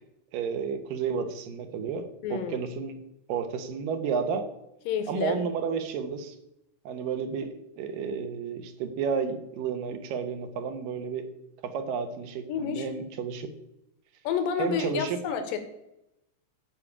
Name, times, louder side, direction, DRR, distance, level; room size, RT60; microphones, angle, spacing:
voice 1, 0.3-3.0 3.3-4.5 5.1-6.4 6.9-11.3 11.6-13.5 14.6-15.2, right 6 dB, 80° right, 8 dB, 2.8 m, -31 dB
voice 2, 2.2-2.6 4.9-5.4 12.5-12.9 14.2-15.6, left 7 dB, 80° left, 7 dB, 2.9 m, -29 dB
14.0 x 4.8 x 8.7 m, 0.86 s
omnidirectional pair, 3.9 m